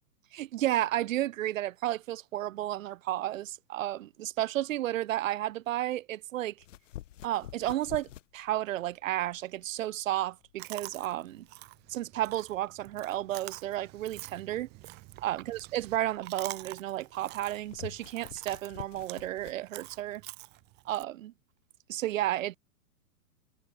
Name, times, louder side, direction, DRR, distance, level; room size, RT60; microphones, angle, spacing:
voice 1, 0.3-6.5 7.2-11.5 11.9-14.7 15.2-20.2 20.9-21.3 21.9-22.6, right 14 dB, 65° right, 0.7 m, -32 dB
sound 1, 6.6-19.6, left 13 dB, 55° left, 2.2 m, -50 dB
Chewing mastication, 10.6-21.0, right 22 dB, 25° right, 1.2 m, -47 dB
hypercardioid pair, 150°, 44 cm